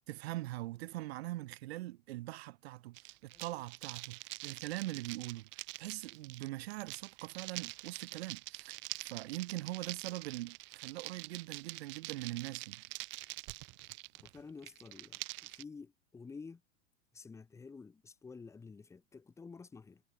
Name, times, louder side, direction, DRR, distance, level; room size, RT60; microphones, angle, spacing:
voice 1, 0.1-5.5 5.8-8.7 9.0-12.8, right 17 dB, 65° right, 1.2 m, -42 dB
sound 1, 2.9-15.6, right 26 dB, 35° right, 2.0 m, -46 dB
voice 2, 14.2-16.6 17.1-20.0, left 4 dB, 10° left, 2.2 m, -51 dB
supercardioid pair, 175°, 33 cm